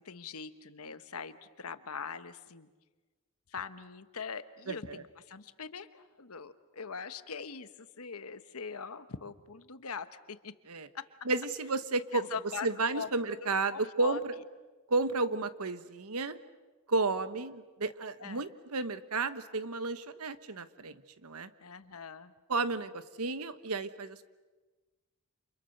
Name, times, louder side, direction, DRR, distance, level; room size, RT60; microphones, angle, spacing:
voice 1, 0.0-2.7 3.5-10.5 10.9-11.1 12.1-12.7 12.9-14.2 18.2-18.5 21.6-22.3, left 6 dB, 75° left, 12 dB, 1.2 m, -42 dB
voice 2, 11.2-12.3 12.6-14.3 14.9-16.4 16.9-21.5 22.5-24.2, right 3 dB, 85° right, 12 dB, 1.2 m, -32 dB
30.0 x 27.5 x 6.7 m, 1.3 s
head